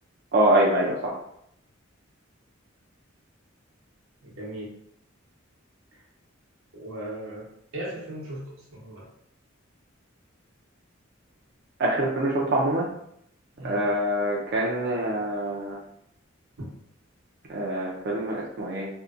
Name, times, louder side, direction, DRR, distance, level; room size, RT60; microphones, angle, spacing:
voice 1, 0.3-1.1 11.8-12.9 13.6-15.8 17.5-18.9, right 1 dB, 50° right, -3 dB, 0.4 m, -25 dB
voice 2, 4.2-4.7 5.9-6.0 6.7-9.1 13.5-13.8 16.6-16.7, right 1 dB, 90° right, -4 dB, 0.9 m, -38 dB
2.6 x 2.1 x 2.4 m, 0.73 s
head